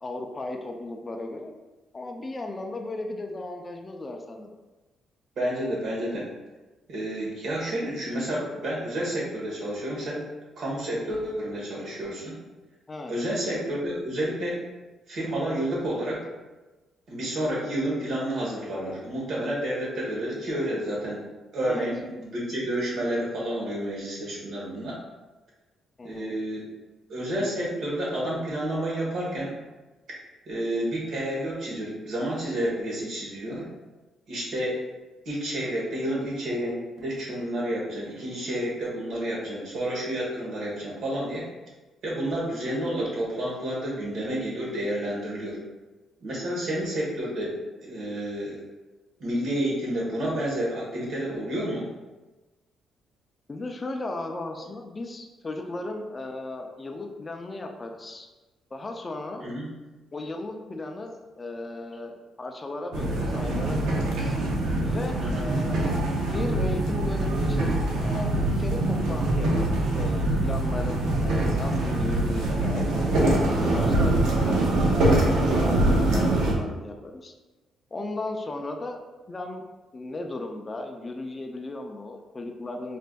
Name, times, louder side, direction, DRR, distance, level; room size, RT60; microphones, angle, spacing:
voice 1, 0.0-1.5 1.9-4.5 12.9-13.1 21.6-21.9 26.0-26.4 53.5-58.3 58.7-59.5 60.1-64.3 64.8-65.8 66.1-72.9 73.6-77.3 77.9-79.0 79.3-79.6 79.9-83.0, left 2 dB, 30° left, 4 dB, 0.4 m, -36 dB
voice 2, 5.4-6.3 6.9-10.2 10.6-12.3 13.1-14.6 15.1-16.2 17.1-21.2 21.5-25.0 26.0-26.6 27.1-29.5 30.5-33.7 34.3-34.8 35.2-41.4 42.0-45.6 46.2-48.6 49.2-51.9 59.4-59.7 65.2-65.4, right 1 dB, 65° right, -4 dB, 1.2 m, -30 dB
sound 1, 62.9-76.5, right 1 dB, 85° right, 0.6 m, -24 dB
4.3 x 2.5 x 2.2 m, 1.2 s
cardioid pair, 90°, 0 cm